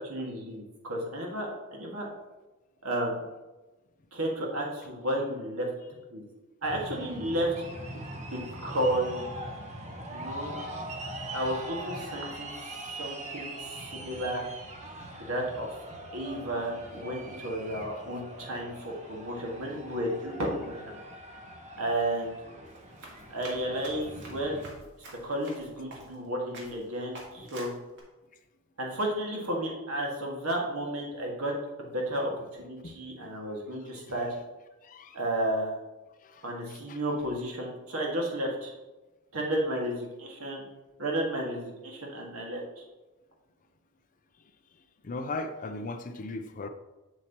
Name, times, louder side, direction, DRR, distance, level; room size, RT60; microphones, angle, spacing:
voice 1, 0.0-2.1 2.8-3.2 4.1-5.7 6.1-6.2 6.6-7.5 8.2-9.3 10.1-10.5 11.3-14.4 15.1-15.8 16.1-21.0 21.8-22.4 23.3-24.6 25.2-27.7 28.8-31.5 31.8-32.3 32.6-34.3 35.1-35.7 36.4-38.7 39.3-40.7 41.0-42.6, right 1 dB, 75° right, -1 dB, 1.8 m, -32 dB
sound 1, 6.6-24.7, right 1 dB, 35° right, 1.1 m, -42 dB
Run, 22.6-26.3 26.5-26.8 27.1-28.0, right 2 dB, 60° right, 1.8 m, -47 dB
voice 2, 34.8-35.2 36.3-36.4 36.9-37.0 45.0-46.7, left 2 dB, 40° left, 6 dB, 0.5 m, -37 dB
7.5 x 7.3 x 2.9 m, 1.1 s
head